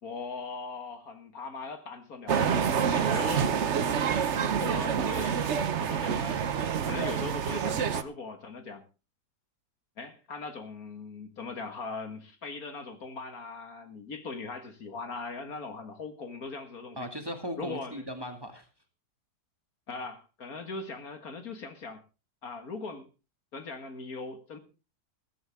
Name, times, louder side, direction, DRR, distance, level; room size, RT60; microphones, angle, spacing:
voice 1, 0.0-3.6 4.6-6.4 6.9-8.8 10.0-17.1 17.6-18.0 19.9-22.0 22.4-23.1 23.5-24.6, left 4 dB, 60° left, 2.2 m, -40 dB
sound 1, 2.3-8.0, right 7 dB, 50° right, 1.1 m, -27 dB
voice 2, 17.0-18.7, equal, 15° right, 2.1 m, -39 dB
15.5 x 14.5 x 3.6 m
omnidirectional pair, 1.8 m